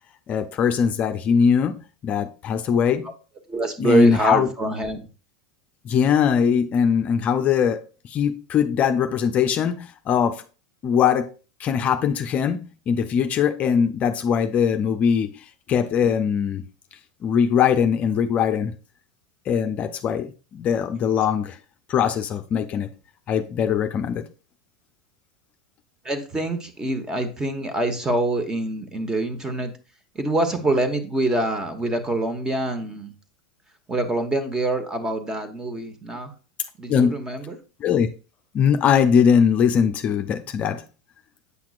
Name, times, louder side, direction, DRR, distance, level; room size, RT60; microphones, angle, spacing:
voice 1, 0.3-1.8 2.0-3.1 3.8-4.5 5.8-10.4 10.8-11.3 11.6-16.6 17.2-18.7 19.5-21.6 21.9-22.9 23.3-24.3 36.9-37.2 37.8-38.1 38.5-40.8, left 7 dB, 40° left, 0.5 m, -21 dB
voice 2, 3.5-5.0 26.0-29.7 30.1-33.1 33.9-36.3 36.8-37.6, right 2 dB, 15° right, 1.1 m, -25 dB
8.2 x 5.8 x 2.5 m
hypercardioid pair, 95°, 4 cm